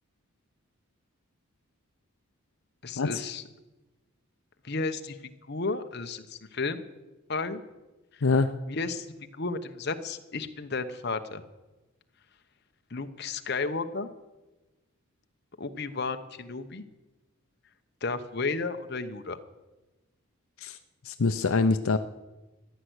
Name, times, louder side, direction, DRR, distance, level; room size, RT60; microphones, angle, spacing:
voice 1, 2.8-3.4 4.6-5.2 5.5-6.8 7.3-7.6 8.1-8.2 8.7-9.1 9.3-11.4 12.9-14.1 15.6-16.8 18.0-19.4, left 3 dB, 50° left, 7 dB, 0.9 m, -33 dB
voice 2, 8.2-8.6 20.6-20.8 21.0-22.0, left 4 dB, 70° left, 9 dB, 0.6 m, -24 dB
14.5 x 10.5 x 8.0 m, 1.1 s
head